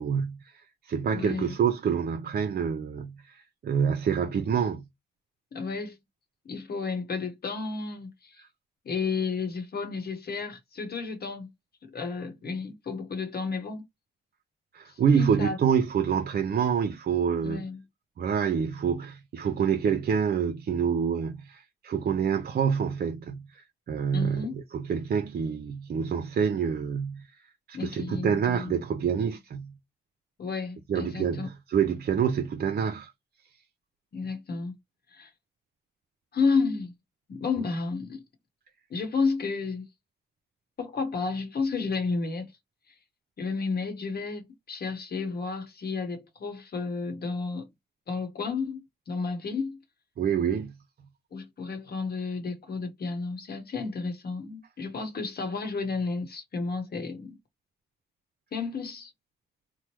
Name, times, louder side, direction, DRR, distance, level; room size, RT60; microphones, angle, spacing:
voice 1, 0.0-4.8 14.7-17.7 18.2-27.4 27.7-29.7 30.9-33.1 50.2-50.7, right 7 dB, 55° right, 0.5 m, -27 dB
voice 2, 1.1-1.6 5.5-6.0 6.4-8.4 8.8-11.5 11.8-13.8 14.9-15.6 17.4-17.8 24.1-24.5 27.7-28.7 30.4-31.5 34.1-34.7 35.1-35.3 36.3-36.9 37.3-38.2 38.9-39.9 40.8-42.5 43.4-47.7 48.1-49.8 51.3-57.4 58.5-59.1, left 4 dB, 60° left, 0.9 m, -32 dB
3.0 x 2.0 x 3.0 m
supercardioid pair, 50°, 18 cm